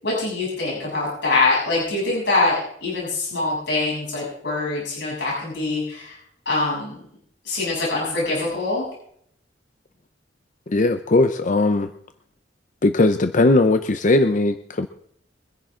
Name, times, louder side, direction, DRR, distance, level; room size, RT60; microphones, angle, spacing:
voice 1, 0.0-6.2 6.5-7.0 7.4-8.9, left 2 dB, 70° left, -5 dB, 7.9 m, -24 dB
voice 2, 10.7-11.9 12.8-14.9, left 2 dB, 45° left, 9 dB, 0.7 m, -18 dB
24.0 x 10.5 x 3.8 m, 0.66 s
head